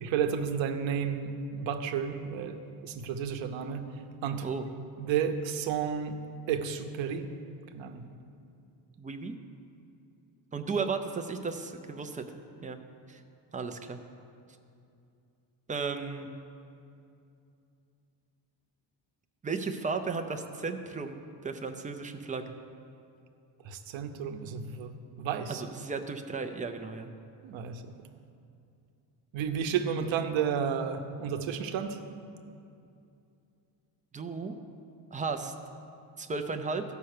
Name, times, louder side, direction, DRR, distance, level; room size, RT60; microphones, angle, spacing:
voice 1, 0.0-2.6 2.8-3.8 4.2-4.4 5.0-6.2 6.5-7.3 7.7-8.0 23.6-24.9 25.2-25.6 27.4-27.9 29.3-32.0, right 7 dB, 80° right, 7 dB, 0.9 m, -32 dB
voice 2, 9.0-9.3 10.5-12.2 12.6-12.8 13.1-13.2 13.5-14.0 15.7-16.3 19.4-22.5 25.5-27.1 34.1-34.6 35.1-35.5 36.2-36.8, right 4 dB, 20° right, 6 dB, 0.4 m, -34 dB
13.5 x 5.7 x 6.5 m, 2.6 s
cardioid pair, 165°, 45 cm